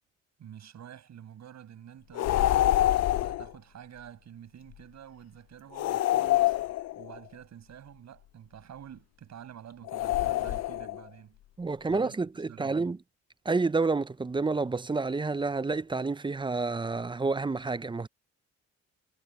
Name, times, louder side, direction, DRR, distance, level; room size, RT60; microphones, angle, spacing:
voice 1, 0.4-2.8 3.2-6.6 7.0-11.4 11.9-12.9, right 9 dB, 65° right, 7.4 m, -48 dB
sound 1, 2.2-3.5 5.8-7.2 9.9-11.0, left 14 dB, 60° left, 0.5 m, -26 dB
voice 2, 11.6-13.0 13.4-18.1, right 3 dB, 15° right, 0.6 m, -29 dB
cardioid pair, 90°, 30 cm